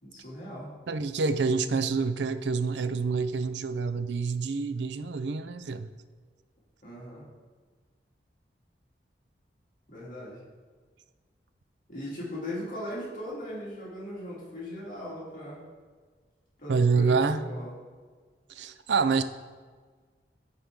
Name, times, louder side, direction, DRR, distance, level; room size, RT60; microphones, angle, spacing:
voice 1, 0.0-0.7 6.8-7.3 9.9-10.4 11.9-15.6 16.6-17.7, left 1 dB, 45° left, -7 dB, 2.5 m, -39 dB
voice 2, 0.9-5.9 16.7-17.4 18.5-19.2, right 4 dB, 75° right, 11 dB, 0.5 m, -27 dB
12.5 x 4.6 x 3.7 m, 1.5 s
head